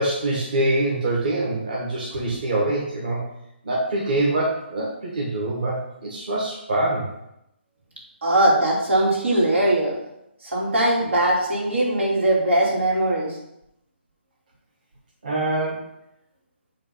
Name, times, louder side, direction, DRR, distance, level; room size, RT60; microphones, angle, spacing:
voice 1, 0.0-3.2 3.6-7.0 15.2-15.8, right 1 dB, 45° right, -4 dB, 1.6 m, -24 dB
voice 2, 8.2-10.0 10.4-13.3, right 1 dB, 80° right, -4 dB, 2.9 m, -20 dB
8.6 x 3.2 x 5.5 m, 0.83 s
hypercardioid pair, 165°, 6 cm